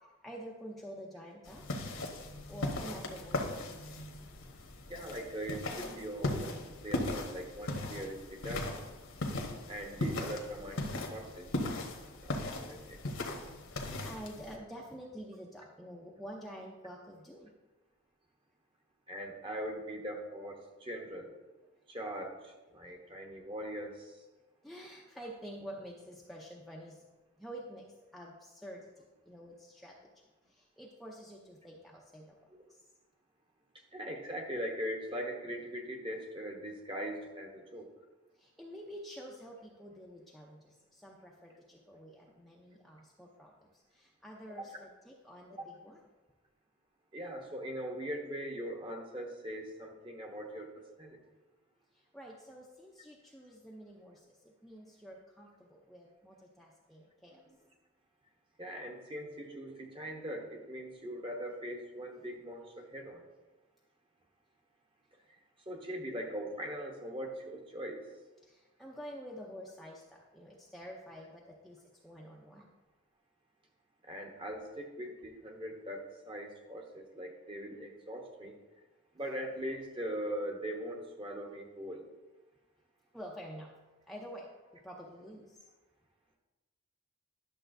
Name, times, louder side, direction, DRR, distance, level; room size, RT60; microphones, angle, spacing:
voice 1, 0.2-1.7 2.5-3.8 13.7-17.5 24.6-27.0 27.4-30.0 30.5-32.3 38.4-46.0 51.9-57.4 68.4-72.7 83.1-83.7 84.1-84.5 84.8-85.7, equal, ahead, -3 dB, 0.5 m, -48 dB
sound 1, 1.5-14.6, left 2 dB, 70° left, 1.1 m, -38 dB
voice 2, 4.9-8.7 9.7-11.5 12.2-13.0 19.1-21.3 21.9-24.2 32.6-32.7 33.7-37.9 44.6-44.8 45.6-45.7 47.1-50.7 51.0-51.2 57.3-57.6 58.6-63.2 65.7-68.0 74.0-78.6 79.1-82.1, equal, 25° right, 2 dB, 0.9 m, -41 dB
11.0 x 6.8 x 2.6 m, 1.2 s
head